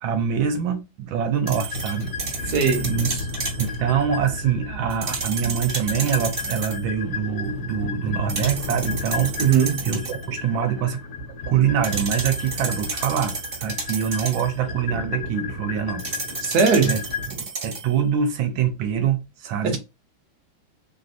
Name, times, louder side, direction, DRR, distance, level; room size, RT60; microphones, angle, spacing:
voice 1, 0.0-2.6 2.8-3.1 3.6-11.0 11.5-16.2 16.9-17.0 17.3-19.8, right 8 dB, 80° right, 1.4 m, -25 dB
sound 1, 1.5-17.3, left 3 dB, 60° left, 1.3 m, -33 dB
sound 2, 1.5-3.8 4.9-6.8 8.3-10.2 11.8-14.6 16.0-18.0, right 4 dB, 45° right, 1.3 m, -32 dB
voice 2, 2.5-3.2 9.4-9.8 16.4-16.9 19.6-19.8, right 6 dB, 65° right, 1.1 m, -20 dB
3.4 x 2.6 x 2.5 m
omnidirectional pair, 2.2 m